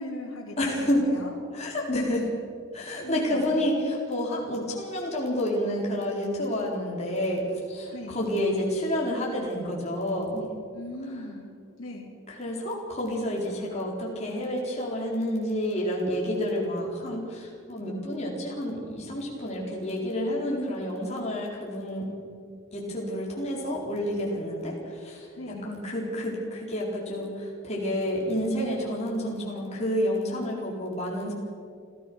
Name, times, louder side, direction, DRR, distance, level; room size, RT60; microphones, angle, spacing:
voice 1, 0.0-1.4 3.0-3.6 7.9-8.2 10.7-11.5 11.8-12.1 25.4-25.7, left 1 dB, 80° left, -2 dB, 3.3 m, -38 dB
voice 2, 0.6-1.0 1.5-2.3 2.7-10.5 12.3-22.1 22.7-25.3 25.6-31.3, equal, 30° left, -3 dB, 4.3 m, -29 dB
29.0 x 14.0 x 6.3 m, 2.3 s
head